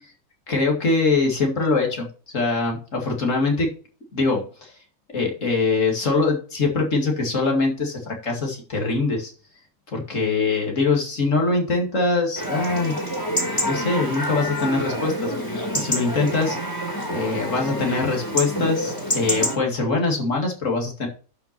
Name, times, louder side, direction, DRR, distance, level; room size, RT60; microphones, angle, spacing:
voice 1, 0.5-2.1 2.3-3.7 4.1-4.7 5.1-9.3 9.9-13.0 13.6-16.6 17.1-21.1, left 3 dB, 60° left, 1 dB, 2.6 m, -23 dB
Chatter / Livestock farm animals working animals / Chirp tweet, 12.4-19.6, equal, 15° left, 3.4 m, -27 dB
11.5 x 5.8 x 4.3 m, 0.38 s
omnidirectional pair, 1.5 m